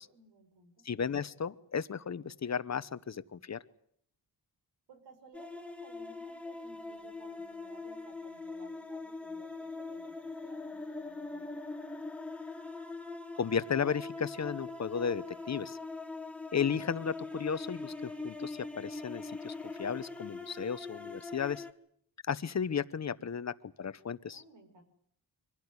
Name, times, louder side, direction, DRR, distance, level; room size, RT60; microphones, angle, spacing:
voice 1, 0.1-0.8 4.9-11.6 24.3-24.8, right 2 dB, 90° right, 6 dB, 5.9 m, -58 dB
voice 2, 0.8-3.6 13.4-15.8 16.5-21.6 22.3-23.5 23.8-24.4, left 7 dB, 40° left, 14 dB, 1.0 m, -34 dB
sound 1, 5.3-21.7, left 3 dB, 5° left, 1.5 m, -42 dB
25.0 x 16.5 x 9.7 m, 0.66 s
wide cardioid pair, 120°, 42 cm